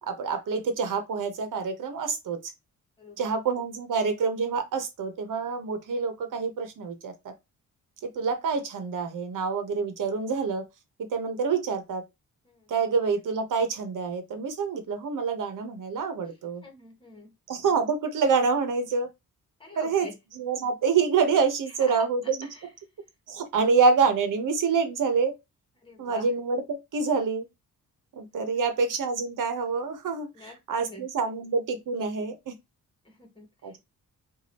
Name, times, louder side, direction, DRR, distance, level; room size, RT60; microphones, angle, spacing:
voice 1, 0.0-2.5 3.2-7.3 8.0-10.7 11.0-12.0 12.7-16.6 17.5-19.1 19.7-20.1 20.3-22.5 23.3-25.3 26.0-27.5 28.1-32.5 33.6-33.8, right 5 dB, 65° right, 1.1 m, -27 dB
voice 2, 3.0-3.3 12.4-12.7 16.6-17.3 19.6-20.1 21.9-22.1 22.4-22.7 25.8-26.3 30.3-31.0 33.0-33.7, left 2 dB, 15° left, 1.5 m, -46 dB
4.7 x 2.6 x 3.0 m
wide cardioid pair, 150°, 34 cm